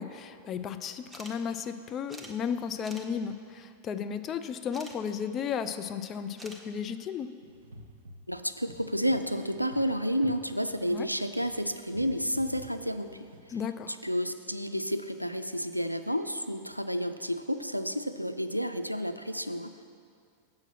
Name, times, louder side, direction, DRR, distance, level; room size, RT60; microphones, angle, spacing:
voice 1, 0.0-7.3 10.9-11.1 13.5-13.9, left 7 dB, 30° left, 9 dB, 0.4 m, -34 dB
sound 1, 1.1-1.3 1.6-1.7 2.1-2.3 2.8-3.1 4.7-5.0 6.4-6.6, right 1 dB, ahead, 0.7 m, -46 dB
sound 2, 7.4-13.4, equal, 70° right, 0.9 m, -50 dB
voice 2, 8.3-13.3 13.9-19.8, equal, 90° right, 9 dB, 0.3 m, -31 dB
7.6 x 6.0 x 5.8 m, 2.3 s
figure-of-eight pair, 90°, 0 cm